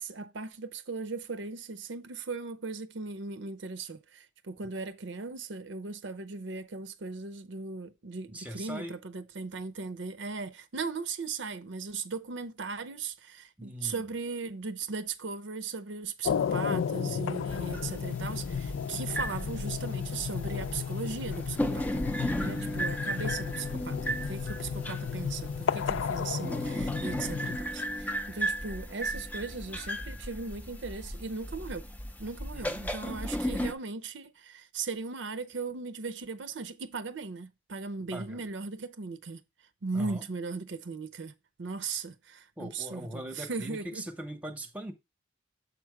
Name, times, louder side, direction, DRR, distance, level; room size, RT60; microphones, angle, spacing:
voice 1, 0.0-22.0 22.3-31.9 32.2-39.4 39.8-41.3 41.6-44.1, right 4 dB, 70° right, 0.6 m, -38 dB
voice 2, 8.3-8.9 13.6-14.0 22.4-22.7 32.5-32.8 38.1-38.4 39.9-40.2 42.6-44.9, right 1 dB, 10° right, 0.9 m, -40 dB
sound 1, 16.2-27.6, left 7 dB, 90° left, 0.3 m, -33 dB
sound 2, 17.5-33.7, equal, 10° left, 0.5 m, -35 dB
7.1 x 4.6 x 4.7 m
head